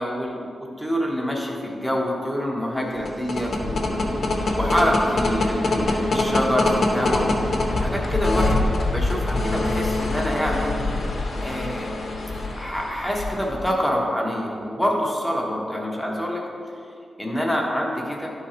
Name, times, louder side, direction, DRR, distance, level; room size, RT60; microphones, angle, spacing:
voice 1, 0.0-4.2 4.6-7.3 7.8-10.7 11.4-11.9 12.6-16.4 17.2-18.3, equal, 5° left, -2 dB, 1.0 m, -26 dB
sound 1, 2.9-13.7, left 2 dB, 60° left, 0.9 m, -24 dB
11.5 x 3.8 x 4.3 m, 2.5 s
wide cardioid pair, 155°, 0 cm